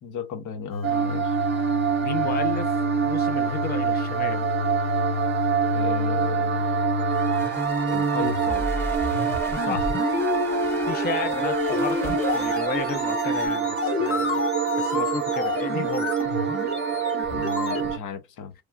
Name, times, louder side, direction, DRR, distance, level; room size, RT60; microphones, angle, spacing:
voice 1, 0.0-1.4 5.7-6.8 7.9-8.8 17.3-18.5, left 6 dB, 85° left, 0.9 m, -35 dB
sound 1, 0.7-17.9, left 5 dB, 45° left, 0.9 m, -30 dB
sound 2, 0.8-18.0, right 8 dB, 40° right, 0.5 m, -26 dB
voice 2, 2.0-2.8 3.0-4.4 9.5-9.9 10.9-14.4 14.8-16.1, left 5 dB, 30° left, 0.5 m, -33 dB
sound 3, 7.0-13.5, equal, 10° left, 0.8 m, -38 dB
3.1 x 2.3 x 2.2 m
cardioid pair, 90°, 30 cm